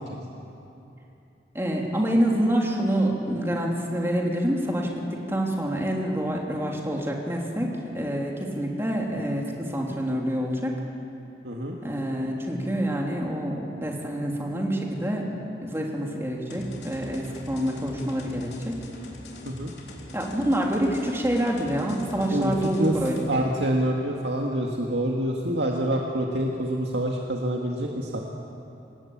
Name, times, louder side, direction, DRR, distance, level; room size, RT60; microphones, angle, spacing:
voice 1, 1.5-10.8 11.8-15.3 15.6-18.8 20.1-23.2, equal, 15° right, -1 dB, 3.1 m, -27 dB
voice 2, 11.4-11.8 19.5-19.7 22.3-22.9 23.3-28.2, right 1 dB, 80° right, -1 dB, 2.0 m, -26 dB
sound 1, 16.5-23.3, left 2 dB, 70° left, 3.8 m, -43 dB
26.5 x 20.5 x 8.8 m, 2.9 s
head